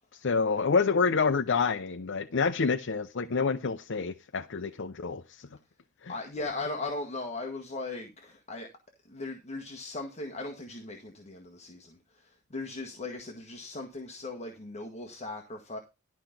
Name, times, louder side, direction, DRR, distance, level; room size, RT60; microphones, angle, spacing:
voice 1, 0.1-5.5 6.0-6.1, left 5 dB, 60° left, 0.6 m, -28 dB
voice 2, 6.1-8.7 9.1-15.8, left 2 dB, 30° left, 1.7 m, -38 dB
12.5 x 5.2 x 5.9 m
head